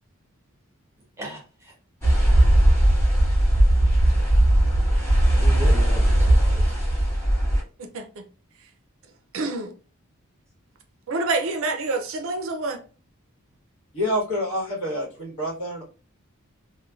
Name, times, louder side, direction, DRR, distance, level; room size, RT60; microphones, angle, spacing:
voice 1, 1.2-1.7 5.3-6.8, equal, 10° right, 0.7 m, -36 dB
sound 1, 2.0-7.6, right 1 dB, 10° left, 1.4 m, -18 dB
voice 2, 7.8-8.2 9.3-9.7 11.1-12.8, right 3 dB, 65° right, 0.5 m, -27 dB
voice 3, 13.9-15.8, equal, 70° left, 1.4 m, -27 dB
3.1 x 2.2 x 2.3 m
head